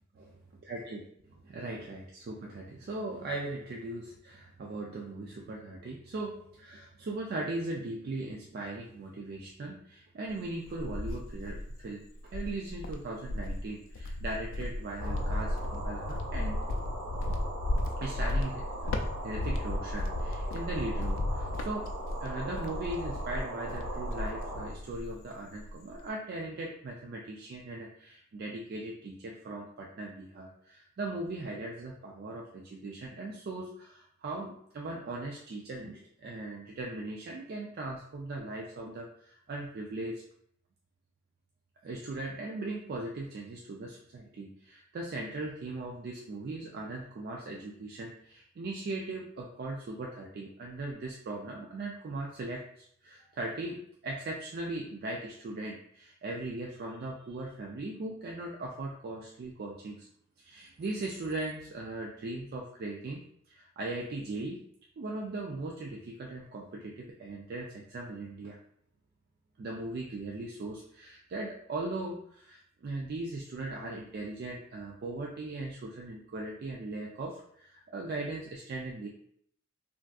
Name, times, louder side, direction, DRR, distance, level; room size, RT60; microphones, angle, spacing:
voice 1, 0.7-1.0 1.4-16.6 18.0-21.9 22.2-40.2 41.8-53.8 54.0-60.1 60.4-63.2 63.5-64.6 65.0-68.6 69.6-79.1, right 2 dB, 50° right, -1 dB, 0.3 m, -39 dB
Cricket, 10.3-11.8 12.3-25.2 25.5-26.1, left 1 dB, 65° left, 0.4 m, -34 dB
sound 1, 15.0-24.7, right 1 dB, 75° right, 0.7 m, -41 dB
3.4 x 2.5 x 2.3 m, 0.68 s
head